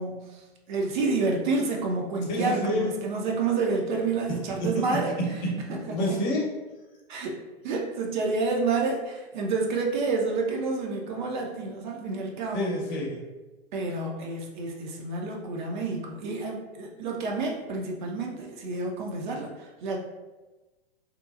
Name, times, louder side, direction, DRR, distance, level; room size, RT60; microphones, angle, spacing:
voice 1, 0.0-5.1 5.7-6.2 7.1-7.4 7.6-12.7 13.7-20.0, right 3 dB, 50° right, 0 dB, 0.5 m, -29 dB
voice 2, 2.3-2.9 4.3-5.5 5.9-6.5 12.5-13.2, equal, 45° left, -2 dB, 0.8 m, -28 dB
2.8 x 2.2 x 2.3 m, 1.2 s
figure-of-eight pair, 105°, 32 cm